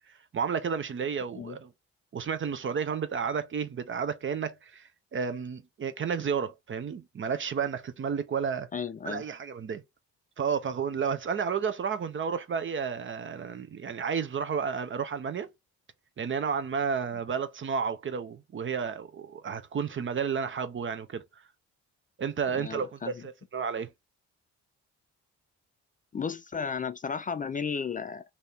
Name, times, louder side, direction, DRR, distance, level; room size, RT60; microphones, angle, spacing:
voice 1, 0.1-1.7 2.1-8.7 9.0-9.8 10.4-15.5 16.2-21.2 22.2-23.9, right 6 dB, 40° right, 0.8 m, -32 dB
voice 2, 8.7-9.2 22.5-23.3 26.1-28.2, left 6 dB, 25° left, 0.4 m, -34 dB
3.3 x 2.8 x 4.3 m
cardioid pair, 90°, 30 cm